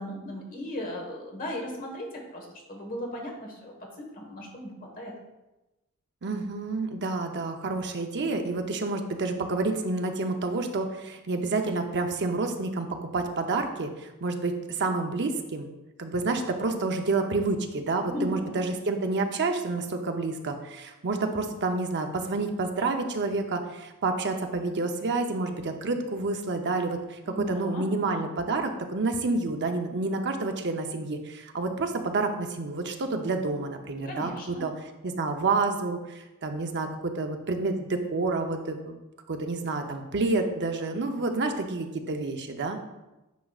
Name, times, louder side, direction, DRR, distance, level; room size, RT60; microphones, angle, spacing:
voice 1, 0.0-5.1 18.0-18.7 27.2-27.9 34.0-34.7, left 1 dB, 40° left, 0 dB, 1.4 m, -37 dB
voice 2, 6.2-15.7 16.0-34.7 35.0-39.0 39.3-42.8, right 3 dB, 55° right, 5 dB, 0.7 m, -29 dB
9.3 x 5.0 x 2.4 m, 1.0 s
head